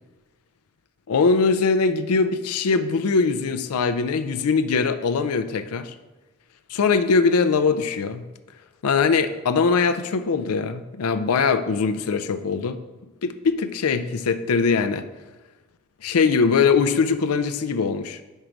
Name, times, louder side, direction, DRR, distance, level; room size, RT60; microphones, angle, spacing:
voice 1, 1.1-5.9 6.7-8.3 8.8-12.8 13.2-15.1 16.0-18.2, left 5 dB, 90° left, 11 dB, 0.5 m, -21 dB
5.4 x 4.6 x 5.0 m, 1.2 s
head